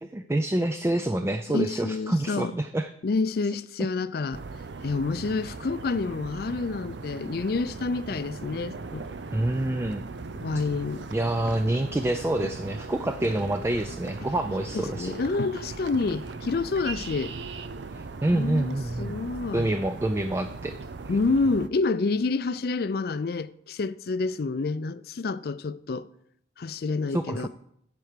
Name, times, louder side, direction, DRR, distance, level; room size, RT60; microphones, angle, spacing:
voice 1, 0.0-2.9 9.3-10.1 11.1-15.1 17.9-19.1 19.5-20.7 27.1-27.5, right 1 dB, 15° right, 0.3 m, -27 dB
voice 2, 1.5-2.5 3.0-4.4 4.8-9.1 10.4-11.1 14.7-17.3 18.3-19.7 21.1-26.1 26.6-27.5, left 3 dB, 60° left, 0.4 m, -28 dB
sound 1, 4.3-21.7, right 3 dB, 75° right, 0.6 m, -39 dB
10.5 x 4.7 x 6.6 m
head